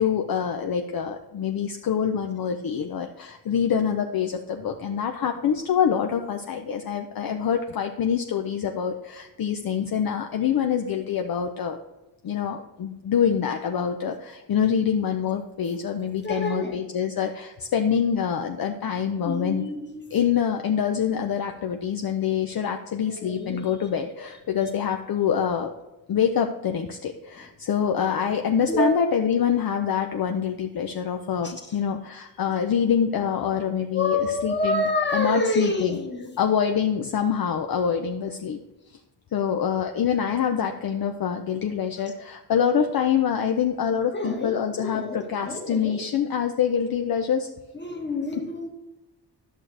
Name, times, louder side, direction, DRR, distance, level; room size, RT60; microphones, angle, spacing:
voice 1, 0.0-11.8 12.2-19.6 20.1-25.7 26.1-36.0 36.4-38.6 39.3-47.5, left 8 dB, 55° left, 4 dB, 0.6 m, -25 dB
voice 2, 16.2-16.8 19.2-20.1 23.1-23.7 28.6-29.0 31.4-31.5 33.9-36.4 44.1-46.0 47.8-48.7, left 2 dB, 25° left, 3 dB, 1.3 m, -28 dB
11.0 x 6.4 x 3.3 m, 1.0 s
wide cardioid pair, 95°, 43 cm